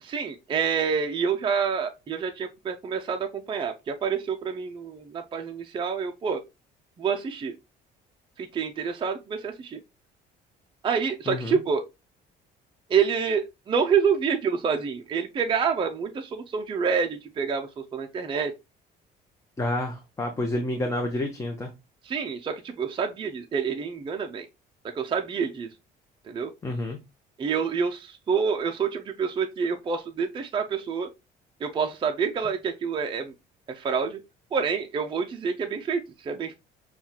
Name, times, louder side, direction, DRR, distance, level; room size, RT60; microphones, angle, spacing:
voice 1, 0.0-6.4 7.0-7.5 8.4-9.8 10.8-11.8 12.9-18.5 22.0-24.5 24.9-25.7 26.3-26.5 27.4-31.1 31.6-33.3 33.7-34.2 34.5-36.5, right 6 dB, 30° right, 0.5 m, -27 dB
voice 2, 11.3-11.6 19.6-21.7 26.6-27.0, left 1 dB, 15° left, 0.8 m, -29 dB
7.0 x 2.4 x 2.9 m
cardioid pair, 110°, 17 cm